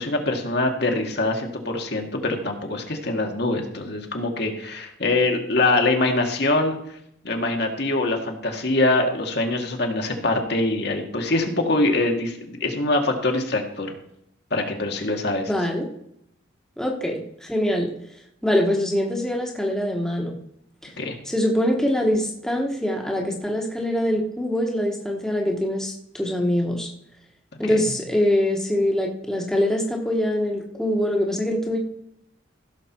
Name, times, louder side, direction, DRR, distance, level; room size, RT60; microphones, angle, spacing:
voice 1, 0.0-6.8 7.2-13.9 14.5-15.5 21.0-21.1 27.6-27.8, left 2 dB, 55° left, 3 dB, 1.6 m, -24 dB
voice 2, 15.5-15.9 16.8-17.9 18.4-20.4 20.8-20.9 21.2-26.9 27.6-31.8, left 1 dB, 5° left, 0 dB, 1.3 m, -24 dB
16.0 x 6.6 x 4.5 m, 0.75 s
head